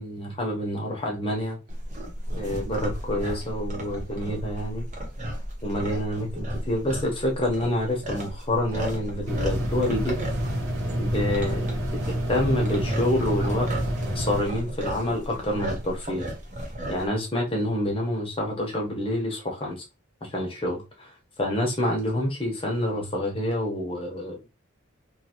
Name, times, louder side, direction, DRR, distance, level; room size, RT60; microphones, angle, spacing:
voice 1, 0.0-1.6 2.3-4.8 5.6-10.2 11.0-12.0 12.3-13.7 14.1-16.3 16.9-19.8 20.2-21.1 21.4-24.5, left 1 dB, 25° left, 0.9 m, -27 dB
sound 1, 1.7-17.1, right 1 dB, 35° right, 0.8 m, -35 dB
sound 2, 9.3-14.4, equal, 60° right, 1.1 m, -28 dB
2.7 x 2.6 x 2.9 m
head